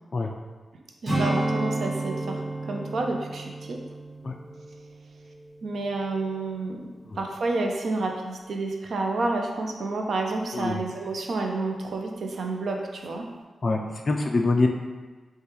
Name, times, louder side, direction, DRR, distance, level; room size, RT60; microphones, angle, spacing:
voice 1, 1.0-2.4 2.7-3.8 5.6-6.9 7.2-13.3, right 2 dB, 60° right, 2 dB, 0.5 m, -29 dB
Strum, 1.1-5.8 6.1-6.4, right 2 dB, 10° right, 1.1 m, -31 dB
voice 2, 13.6-14.7, left 3 dB, 35° left, 2 dB, 0.3 m, -24 dB
6.5 x 2.3 x 3.0 m, 1.4 s
wide cardioid pair, 170°, 0 cm